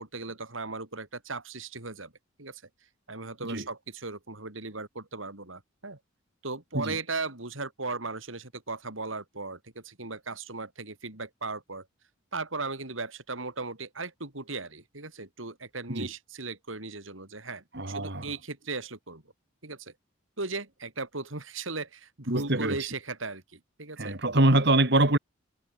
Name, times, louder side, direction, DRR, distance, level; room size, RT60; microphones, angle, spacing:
voice 1, 0.0-2.1 2.4-2.6 3.1-6.0 6.4-11.9 12.3-19.2 19.6-19.9 20.4-24.1, right 3 dB, 85° right, 4.6 m, -37 dB
voice 2, 17.7-18.3 22.3-22.8 24.0-25.2, right 2 dB, 60° right, 3.4 m, -24 dB
head